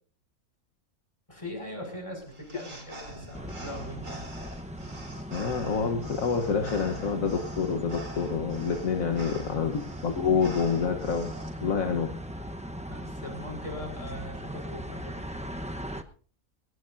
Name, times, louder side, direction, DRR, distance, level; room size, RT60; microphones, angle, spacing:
voice 1, 1.3-4.2 8.9-9.4 12.9-15.1, left 1 dB, 20° left, 2 dB, 5.8 m, -41 dB
sound 1, 2.2-11.5, right 1 dB, 55° right, 4.6 m, -45 dB
sound 2, 3.3-16.0, equal, 5° right, 0.7 m, -39 dB
voice 2, 5.3-11.3 11.6-12.1, left 6 dB, 65° left, 5 dB, 1.6 m, -27 dB
21.0 x 19.0 x 2.6 m, 0.43 s
omnidirectional pair, 1.5 m